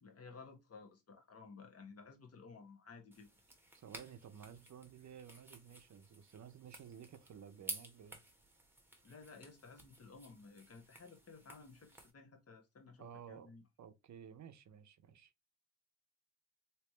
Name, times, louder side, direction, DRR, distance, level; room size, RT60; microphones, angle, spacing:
voice 1, 0.0-3.3 9.0-13.6, left 4 dB, 50° left, 1.2 m, -56 dB
sound 1, 3.1-12.1, right 1 dB, 5° right, 1.1 m, -53 dB
voice 2, 3.7-8.2 13.0-13.5 13.8-15.3, right 8 dB, 60° right, 0.7 m, -54 dB
3.2 x 2.9 x 3.0 m
cardioid pair, 75°, 32 cm